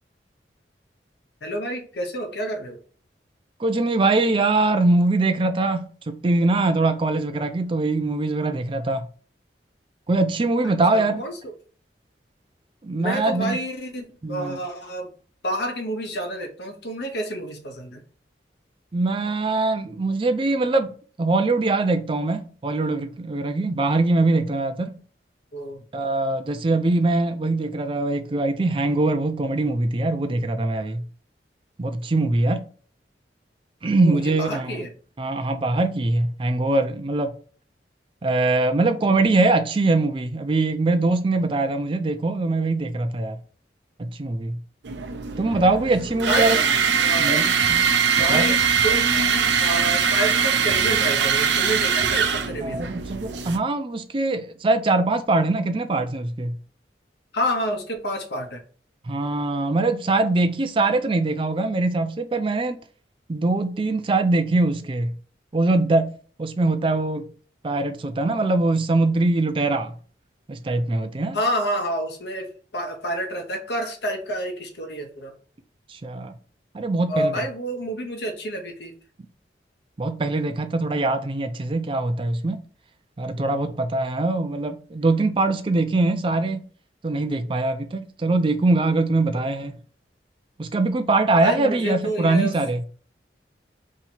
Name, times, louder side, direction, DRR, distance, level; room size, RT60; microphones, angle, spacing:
voice 1, 1.4-2.8 10.9-11.4 13.0-15.1 15.4-18.0 25.5-25.8 34.0-34.9 46.3-47.4 48.2-52.8 57.3-58.6 71.3-75.3 77.1-78.9 83.4-83.6 89.4-89.5 91.4-92.6, equal, 70° left, 0.8 m, -29 dB
voice 2, 3.6-9.1 10.1-11.2 12.8-13.6 14.2-14.6 18.9-20.9 21.2-25.0 25.9-31.0 31.8-32.6 33.8-34.8 35.2-37.3 38.2-43.4 44.0-44.6 45.4-46.6 47.2-47.4 47.7-47.9 48.2-48.4 52.6-56.6 59.1-62.8 63.3-65.1 65.5-67.3 67.6-69.9 70.5-71.4 75.9-76.4 76.7-77.3 80.0-82.6 83.2-86.6 87.0-89.7 90.6-92.8, right 2 dB, 30° right, 0.4 m, -22 dB
sound 1, 44.8-53.6, right 6 dB, 85° right, 0.5 m, -22 dB
2.8 x 2.8 x 4.3 m
head